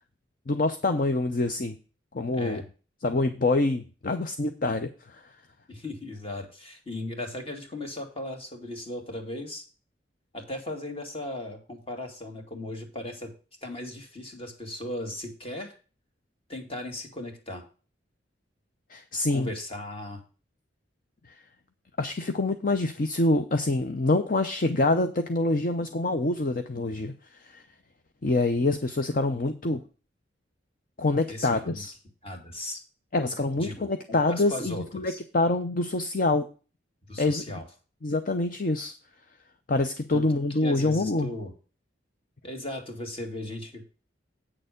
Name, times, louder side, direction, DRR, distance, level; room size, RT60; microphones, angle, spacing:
voice 1, 0.5-1.8 2.1-2.6 3.0-5.2 18.9-19.5 22.0-27.1 27.4-27.6 28.2-29.8 31.0-31.9 33.1-36.5 37.2-37.6 38.0-38.9 39.7-41.3, left 2 dB, 50° left, 8 dB, 0.7 m, -26 dB
voice 2, 2.3-2.6 5.7-9.7 10.3-13.3 13.6-15.8 16.5-17.6 19.3-20.2 31.2-31.8 32.2-32.8 33.6-35.2 37.1-37.6 40.1-40.3 40.6-41.5 42.4-43.8, left 1 dB, 30° left, 4 dB, 2.3 m, -37 dB
8.9 x 6.9 x 5.1 m, 0.35 s
head